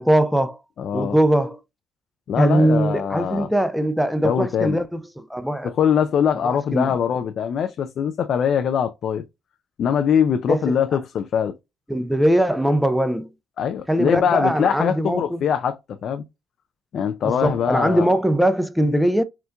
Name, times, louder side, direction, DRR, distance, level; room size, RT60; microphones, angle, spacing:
voice 1, 0.0-0.6 0.9-1.6 2.4-5.7 6.4-7.0 10.5-10.8 11.9-13.3 13.9-15.4 17.2-19.2, right 1 dB, ahead, 0.5 m, -21 dB
voice 2, 0.8-1.1 2.3-3.5 4.2-4.8 5.8-9.2 9.8-11.5 13.6-16.2 16.9-18.2, left 8 dB, 60° left, 0.4 m, -22 dB
4.4 x 2.4 x 2.2 m
supercardioid pair, 70°, 0 cm